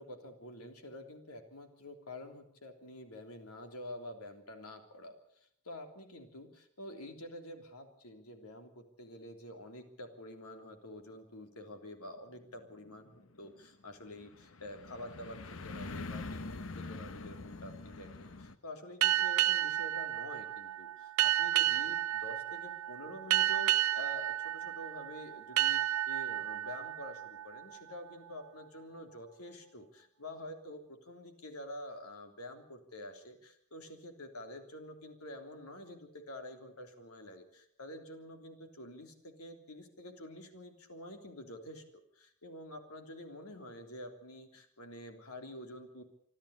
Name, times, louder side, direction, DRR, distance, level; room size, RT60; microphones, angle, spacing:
voice 1, 0.0-41.8 42.1-46.0, left 1 dB, 85° left, 5 dB, 3.4 m, -48 dB
sound 1, 12.2-18.6, left 3 dB, 65° left, 1.0 m, -45 dB
sound 2, 19.0-28.3, right 13 dB, 90° right, 0.9 m, -32 dB
26.0 x 12.0 x 8.3 m, 0.70 s
head